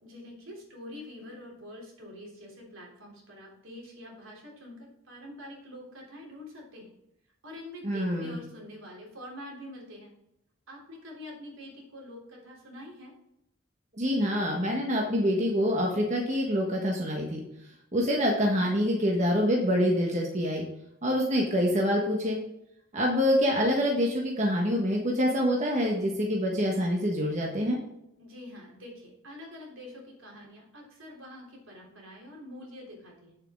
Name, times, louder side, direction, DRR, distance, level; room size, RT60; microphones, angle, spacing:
voice 1, 0.0-6.9 7.4-10.1 10.7-13.1 28.2-33.4, left 1 dB, 75° right, -1 dB, 3.3 m, -46 dB
voice 2, 7.8-8.4 14.0-17.4 17.9-20.6 21.0-22.4 22.9-27.8, equal, 35° right, -1 dB, 1.4 m, -26 dB
8.8 x 7.2 x 3.7 m, 0.81 s
head